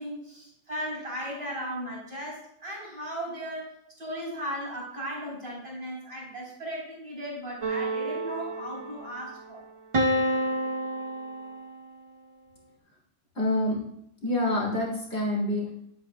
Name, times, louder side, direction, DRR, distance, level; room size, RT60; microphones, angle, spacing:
voice 1, 0.0-9.6, equal, 50° right, -4 dB, 4.6 m, -36 dB
sound 1, 7.6-9.3 9.9-11.9, right 1 dB, 35° right, 0.6 m, -29 dB
voice 2, 13.3-13.8 14.2-15.7, left 1 dB, 60° left, -4 dB, 3.4 m, -27 dB
11.0 x 9.2 x 2.4 m, 0.74 s
omnidirectional pair, 1.3 m